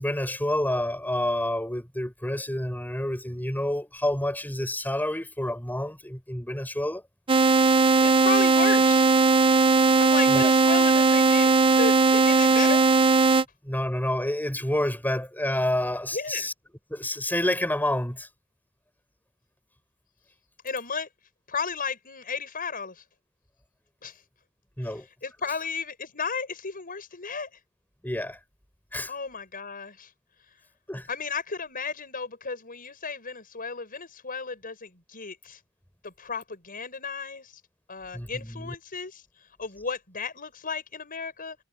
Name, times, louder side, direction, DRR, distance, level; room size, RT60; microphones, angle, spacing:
voice 1, 0.0-7.0 10.3-10.5 13.6-16.5 16.9-18.3 24.8-25.1 28.0-28.4 28.9-29.1 30.9-31.1 38.1-38.7, left 1 dB, 10° left, 6.8 m, -28 dB
sound 1, 7.3-13.4, right 4 dB, 25° right, 0.5 m, -19 dB
voice 2, 8.0-9.1 10.0-12.9 16.1-16.5 20.6-21.1 21.5-23.0 24.0-24.2 24.8-27.5 29.1-30.1 31.1-35.6 36.0-37.6 37.9-39.2 39.6-41.6, left 5 dB, 40° left, 6.2 m, -34 dB
head